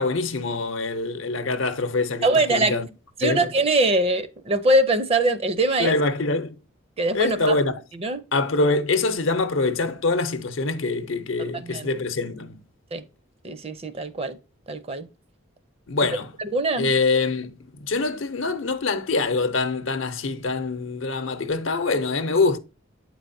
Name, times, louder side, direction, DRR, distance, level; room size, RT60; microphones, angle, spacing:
voice 1, 0.0-2.9 3.2-3.4 5.8-6.5 7.1-7.7 8.3-12.6 15.9-16.3 16.8-22.6, left 3 dB, 70° left, 0.8 m, -24 dB
voice 2, 2.2-2.8 3.2-5.9 7.0-7.6 7.9-8.2 11.4-11.9 12.9-13.0 13.4-14.4 14.7-15.1 16.4-16.9, right 2 dB, 30° right, 0.6 m, -22 dB
8.2 x 4.6 x 2.6 m
head